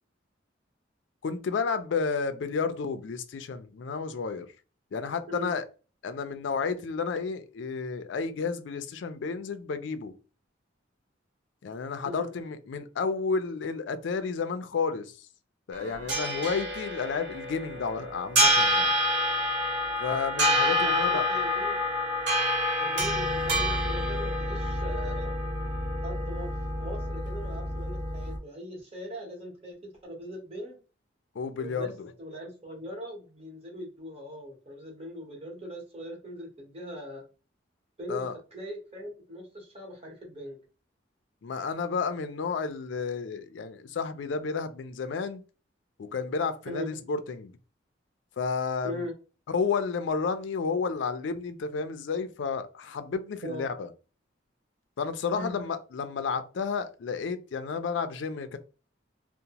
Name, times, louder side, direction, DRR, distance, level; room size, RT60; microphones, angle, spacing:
voice 1, 1.2-4.5 4.9-5.7 6.0-10.1 11.6-15.1 15.7-18.9 20.0-21.3 31.4-32.1 38.1-38.4 41.4-45.4 46.0-47.5 48.4-49.1 49.5-53.9 55.0-58.6, left 5 dB, 75° left, 0.4 m, -31 dB
voice 2, 5.3-5.6 12.0-12.3 20.8-21.8 22.8-25.3 26.0-30.8 31.6-31.9 32.2-37.2 38.0-40.6 46.6-46.9 48.8-49.1 53.4-53.7 55.3-55.6, equal, 35° right, 1.0 m, -40 dB
sound 1, 15.7-28.4, equal, 65° right, 1.0 m, -28 dB
2.8 x 2.0 x 2.8 m
head